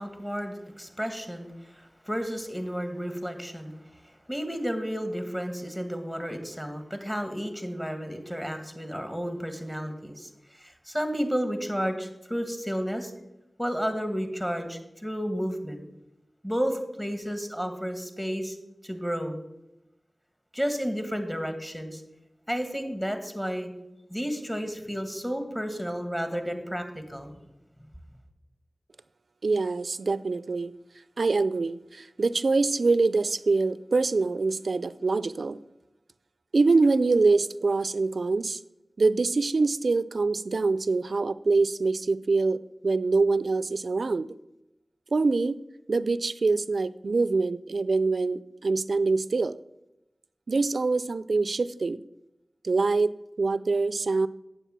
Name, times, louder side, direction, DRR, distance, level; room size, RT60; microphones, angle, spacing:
voice 1, 0.0-3.7 4.3-13.1 13.6-15.8 16.4-18.6 18.8-19.4 20.5-22.0 22.5-23.7 24.1-27.3, equal, 10° left, 6 dB, 1.9 m, -32 dB
voice 2, 29.4-30.7 31.2-35.6 36.5-38.6 39.0-44.3 45.1-45.6 45.9-49.6 50.5-52.0 52.6-53.1 53.4-54.3, right 3 dB, 80° right, 16 dB, 0.4 m, -24 dB
9.1 x 7.5 x 5.9 m, 0.90 s
cardioid pair, 40°, 0 cm